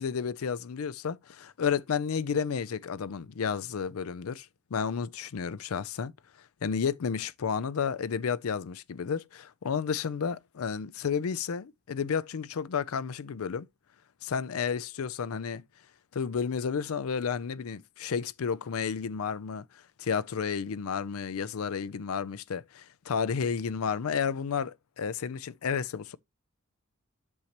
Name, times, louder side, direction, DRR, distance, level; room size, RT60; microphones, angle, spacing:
voice 1, 0.0-6.1 6.6-13.7 14.2-15.6 16.1-19.6 20.0-26.2, left 6 dB, 90° left, 0.5 m, -31 dB
8.6 x 6.5 x 2.9 m
head